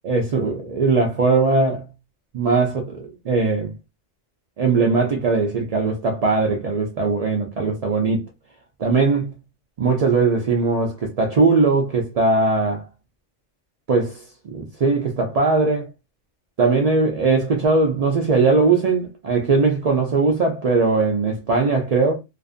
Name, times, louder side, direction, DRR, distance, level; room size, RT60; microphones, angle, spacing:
voice 1, 0.0-1.9 2.3-3.7 4.6-8.3 8.8-9.3 9.8-12.9 13.9-14.2 14.5-15.9 16.6-22.2, right 3 dB, 65° right, 0.3 m, -20 dB
2.5 x 2.5 x 2.4 m
omnidirectional pair, 1.2 m